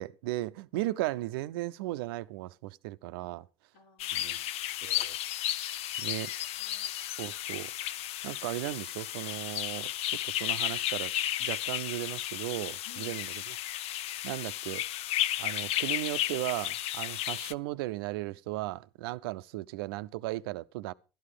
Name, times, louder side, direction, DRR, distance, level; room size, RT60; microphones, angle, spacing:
voice 1, 0.0-3.5 4.1-4.4 4.8-5.2 6.0-6.3 7.0-7.7 8.2-11.1 11.4-13.6 14.2-14.8 15.4-20.9, right 18 dB, 85° right, 0.6 m, -36 dB
voice 2, 3.7-4.5 6.1-6.9 12.8-13.2 17.3-17.4, left 6 dB, 80° left, 3.2 m, -56 dB
sound 1, 4.0-17.5, left 13 dB, 60° left, 0.6 m, -33 dB
12.0 x 11.5 x 4.9 m
supercardioid pair, 85°, 12 cm